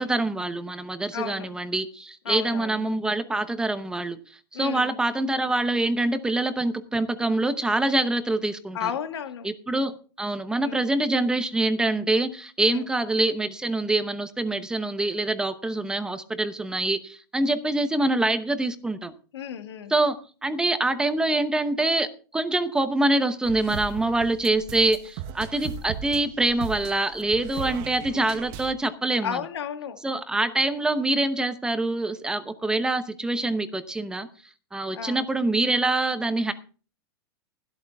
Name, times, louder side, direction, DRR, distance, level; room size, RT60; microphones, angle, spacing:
voice 1, 0.0-4.2 4.5-8.9 9.4-19.1 19.9-22.1 22.3-29.4 30.0-34.3 34.7-36.5, right 2 dB, 5° right, 0.8 m, -25 dB
voice 2, 1.1-1.6 2.3-2.8 4.5-5.0 8.7-9.5 10.6-10.9 12.6-12.9 19.3-19.9 29.2-30.0 34.9-35.3, left 8 dB, 85° left, 1.9 m, -33 dB
sound 1, 23.4-28.7, right 9 dB, 40° right, 1.0 m, -37 dB
13.5 x 12.5 x 3.5 m
supercardioid pair, 155°, 13 cm